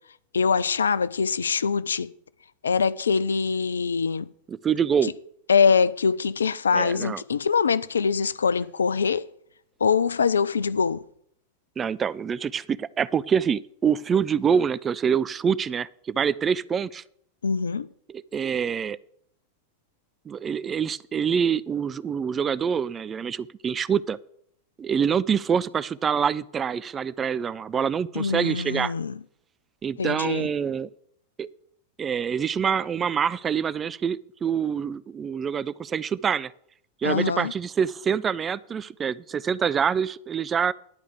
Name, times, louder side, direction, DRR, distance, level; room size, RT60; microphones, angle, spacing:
voice 1, 0.3-2.1 2.6-4.3 5.0-5.1 5.5-9.3 9.8-11.0 17.4-17.9 28.1-29.2 30.0-30.5 37.0-37.5, left 5 dB, 70° left, 0.4 m, -23 dB
voice 2, 4.5-5.1 6.7-7.2 11.8-17.0 18.1-19.0 20.3-24.2 24.8-28.9 29.8-30.9 31.4-31.5 32.0-36.5 37.0-40.7, right 7 dB, 20° right, 0.4 m, -26 dB
10.5 x 4.7 x 8.2 m
figure-of-eight pair, 90°, 0 cm